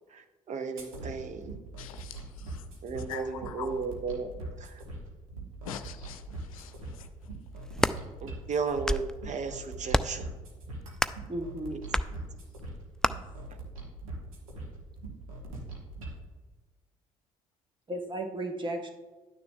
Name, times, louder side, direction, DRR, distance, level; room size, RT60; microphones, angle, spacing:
voice 1, 0.1-1.5 2.8-4.3 4.6-4.8 8.2-10.3 11.7-11.8, right 5 dB, 40° right, 8 dB, 0.8 m, -34 dB
sound 1, 0.8-16.2, right 2 dB, 75° right, 1.4 m, -42 dB
voice 2, 1.8-2.6 3.1-3.7 5.7-7.1, left 9 dB, 75° left, 9 dB, 0.6 m, -43 dB
sound 2, 7.6-8.0 8.6-9.2 9.9-10.2 11.0-11.3 11.9-12.1 13.0-13.1, left 1 dB, 5° left, 0.3 m, -28 dB
voice 3, 11.3-11.8 17.9-18.9, right 1 dB, 25° right, 4 dB, 1.4 m, -34 dB
11.0 x 9.4 x 2.3 m, 1.2 s
figure-of-eight pair, 50°, 18 cm